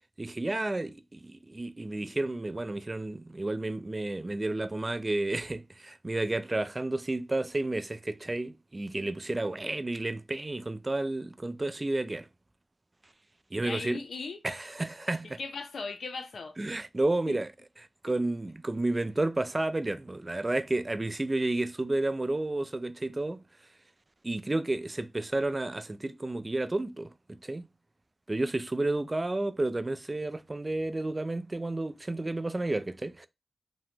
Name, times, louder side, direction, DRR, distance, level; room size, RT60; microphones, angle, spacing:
voice 1, 0.2-12.3 13.5-14.0 14.4-15.4 16.6-17.5 18.0-23.4 24.2-27.1 27.4-27.6 28.3-33.3, right 2 dB, 30° right, 0.3 m, -31 dB
voice 2, 13.6-14.4 15.4-16.6 17.3-17.4, left 4 dB, 80° left, 0.5 m, -38 dB
2.9 x 2.0 x 3.2 m
cardioid pair, 45°, 0 cm